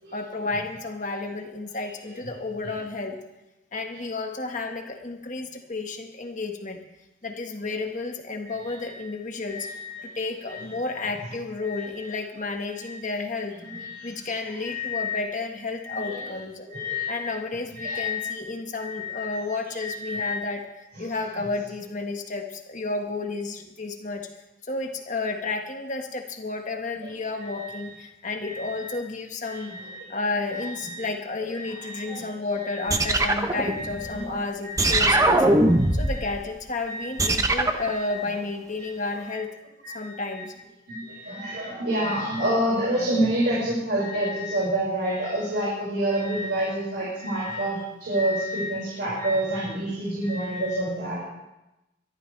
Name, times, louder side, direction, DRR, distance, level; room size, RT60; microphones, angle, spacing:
voice 1, 0.1-3.2 3.7-6.8 7.2-9.7 10.0-13.6 14.0-16.7 17.1-20.6 21.0-24.3 24.7-29.7 30.1-35.4 35.9-39.5 39.9-40.6, left 3 dB, 40° left, 3 dB, 1.6 m, -32 dB
voice 2, 9.4-10.1 10.5-10.8 11.6-12.0 12.8-13.0 13.6-14.3 14.6-15.2 15.8-16.3 16.7-17.3 17.8-18.3 18.8-19.4 19.8-20.4 21.0-21.1 27.0-27.1 27.4-27.8 28.4-28.9 29.4-30.0 30.5-31.1 31.5-32.2 32.6-33.1 33.7-34.3 34.6-35.2 35.9-36.2 36.8-37.3 37.8-38.3 39.8-40.2 40.9-51.2, equal, 55° right, -6 dB, 5.5 m, -29 dB
sound 1, 32.9-34.2 34.8-36.3 37.2-37.9, right 2 dB, 15° right, 0.8 m, -21 dB
22.5 x 13.5 x 3.4 m, 0.96 s
head